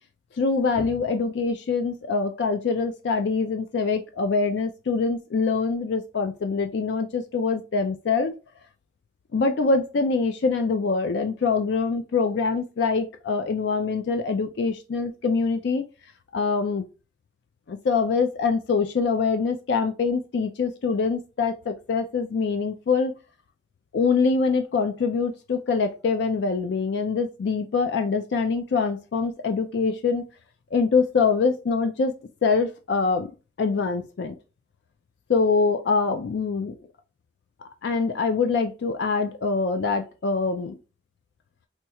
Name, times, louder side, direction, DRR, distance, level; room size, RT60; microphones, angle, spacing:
voice 1, 0.4-8.3 9.3-15.9 16.3-16.8 17.7-23.1 23.9-30.3 30.7-33.3 33.6-34.3 35.3-36.7 37.8-40.8, left 4 dB, 60° left, 7 dB, 0.3 m, -24 dB
4.3 x 2.3 x 2.8 m, 0.32 s
head